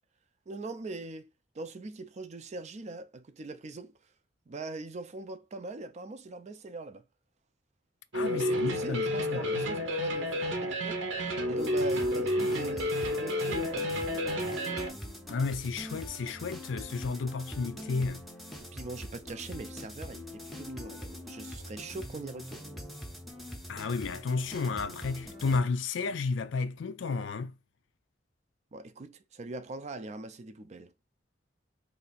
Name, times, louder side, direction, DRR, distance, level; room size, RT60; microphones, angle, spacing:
voice 1, 0.5-1.3 1.5-4.0 4.5-7.0 8.3-11.0 11.5-14.0 14.2-14.5 18.6-22.9 28.7-30.9, right 2 dB, 40° right, 0.4 m, -42 dB
voice 2, 8.1-9.6 15.3-18.2 23.7-27.5, left 4 dB, 75° left, 0.4 m, -32 dB
sound 1, 8.1-14.9, equal, 90° right, 0.8 m, -30 dB
sound 2, 11.6-25.6, left 1 dB, ahead, 0.6 m, -43 dB
2.7 x 2.4 x 4.0 m
head